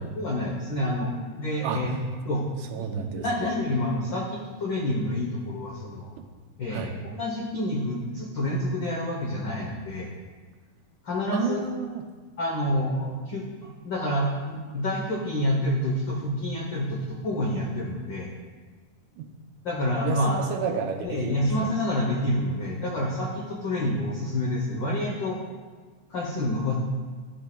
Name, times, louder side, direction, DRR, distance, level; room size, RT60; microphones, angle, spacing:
voice 1, 0.0-1.9 2.2-2.4 2.8-6.1 6.6-10.1 11.0-11.6 12.4-13.4 13.8-18.3 19.6-20.4 21.0-25.4 26.1-26.7, left 1 dB, 85° left, -2 dB, 1.0 m, -28 dB
voice 2, 2.7-3.5 6.7-6.9 11.3-12.0 19.2-19.3 20.0-21.7, right 6 dB, 90° right, 4 dB, 2.1 m, -31 dB
11.5 x 6.1 x 2.2 m, 1.4 s
omnidirectional pair, 3.4 m